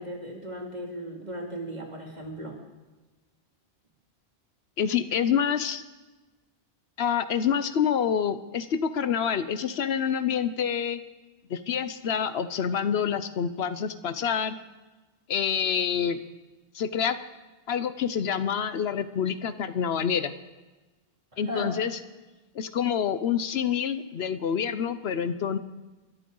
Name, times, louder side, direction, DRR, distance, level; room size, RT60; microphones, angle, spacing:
voice 1, 0.0-2.6 21.3-21.7, equal, 45° right, 0 dB, 2.7 m, -36 dB
voice 2, 4.8-5.8 7.0-11.0 11.5-14.6 15.3-16.2 16.7-17.2 17.7-20.3 21.4-22.0 22.5-25.6, left 8 dB, 80° left, 12 dB, 1.0 m, -27 dB
22.5 x 12.5 x 3.9 m, 1.2 s
omnidirectional pair, 1.1 m